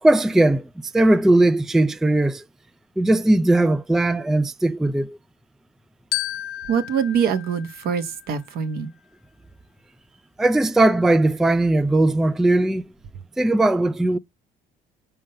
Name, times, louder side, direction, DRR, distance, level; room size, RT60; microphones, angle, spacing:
voice 1, 0.0-2.4 3.0-5.2 10.4-12.8 13.4-14.2, right 2 dB, ahead, 0.3 m, -19 dB
Glockenspiel, 6.1-8.6, left 15 dB, 70° left, 0.6 m, -33 dB
voice 2, 6.7-8.9, right 7 dB, 65° right, 1.0 m, -24 dB
5.2 x 3.7 x 5.5 m
cardioid pair, 110°, 17 cm